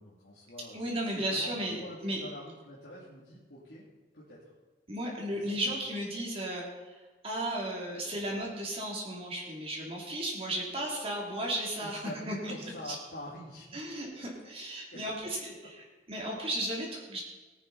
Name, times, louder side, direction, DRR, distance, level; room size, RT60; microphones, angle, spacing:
voice 1, 0.0-3.8 4.1-4.5 5.3-5.6 11.8-13.7 14.9-15.5, left 1 dB, 90° left, -8 dB, 2.9 m, -46 dB
voice 2, 0.7-2.2 4.9-6.9 7.2-12.0 12.3-12.5 12.8-13.0 13.7-15.7 16.1-17.2, right 1 dB, 35° right, -2 dB, 3.2 m, -34 dB
19.5 x 9.1 x 4.2 m, 1.3 s
head